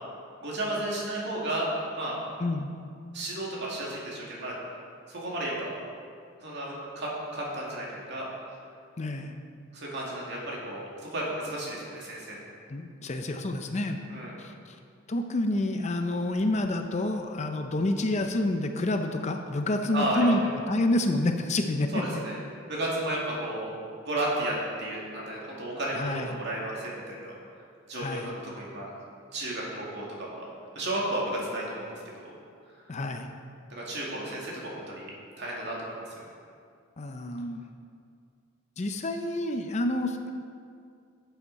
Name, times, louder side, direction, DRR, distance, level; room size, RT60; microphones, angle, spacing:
voice 1, 0.4-2.2 3.1-4.6 5.1-5.8 6.4-8.3 9.7-12.4 14.1-14.4 19.9-20.3 21.9-22.4 22.7-23.7 24.1-27.4 27.9-28.9 29.3-30.4 30.7-32.3 33.7-35.1 35.4-35.8, right 1 dB, 55° right, -4 dB, 2.4 m, -33 dB
voice 2, 2.4-2.7 9.0-9.3 12.7-14.0 14.4-14.5 15.1-20.4 20.7-22.0 25.9-26.3 27.9-28.3 32.9-33.3 37.0-37.6 38.8-40.4, left 1 dB, 35° left, 6 dB, 0.5 m, -28 dB
11.5 x 7.9 x 4.1 m, 2.3 s
head